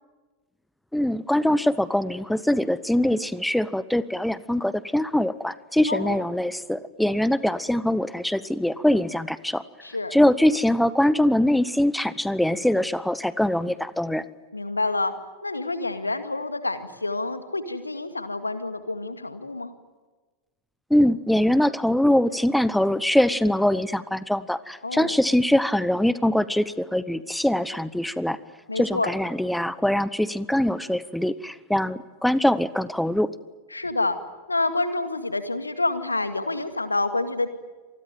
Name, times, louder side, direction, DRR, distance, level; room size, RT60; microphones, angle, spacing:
voice 1, 0.9-9.6 10.1-14.2 20.9-28.4 28.7-33.3, left 1 dB, ahead, 17 dB, 0.9 m, -23 dB
voice 2, 5.9-6.2 9.8-10.2 14.5-15.1 15.4-19.7 24.8-25.2 28.7-29.1 33.7-34.2 34.5-37.5, left 2 dB, 80° left, 10 dB, 2.1 m, -28 dB
27.0 x 20.0 x 9.2 m, 1.3 s
figure-of-eight pair, 90°, 0 cm